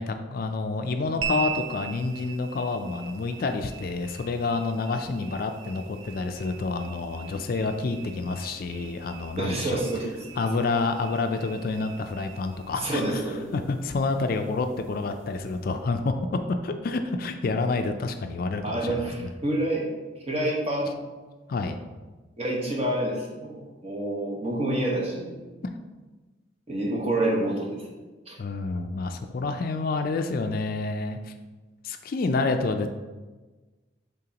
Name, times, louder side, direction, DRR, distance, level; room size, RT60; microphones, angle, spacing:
voice 1, 0.0-9.8 10.4-13.2 13.5-19.3 21.5-21.7 28.4-31.3 31.8-32.9, left 3 dB, 50° left, 7 dB, 0.4 m, -28 dB
sound 1, 1.2-15.8, right 8 dB, 90° right, 0.5 m, -41 dB
voice 2, 9.4-10.1 12.7-13.7 18.6-19.9 20.3-20.9 22.4-25.4 26.7-27.9 28.3-28.4, right 1 dB, 30° right, -2 dB, 1.2 m, -28 dB
8.8 x 3.7 x 2.9 m, 1.3 s
head